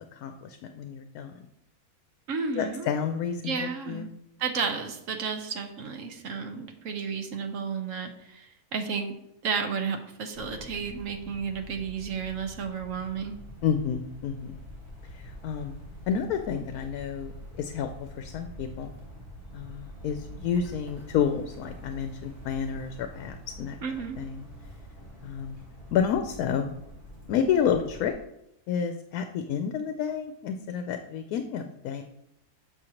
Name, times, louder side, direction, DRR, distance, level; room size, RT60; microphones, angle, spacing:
voice 1, 0.1-1.3 2.6-4.1 13.6-14.6 15.0-15.8 16.1-18.9 19.5-23.8 24.2-24.4 25.2-25.5 25.9-26.8 27.3-28.1 28.7-32.0, left 7 dB, 80° left, 7 dB, 1.0 m, -30 dB
voice 2, 2.3-2.9 3.4-4.1 4.4-9.1 9.4-13.4 23.8-24.2, right 5 dB, 65° right, 5 dB, 1.2 m, -32 dB
sound 1, 10.3-28.1, equal, 40° right, 1.8 m, -45 dB
7.0 x 6.3 x 2.9 m, 0.82 s
omnidirectional pair, 1.6 m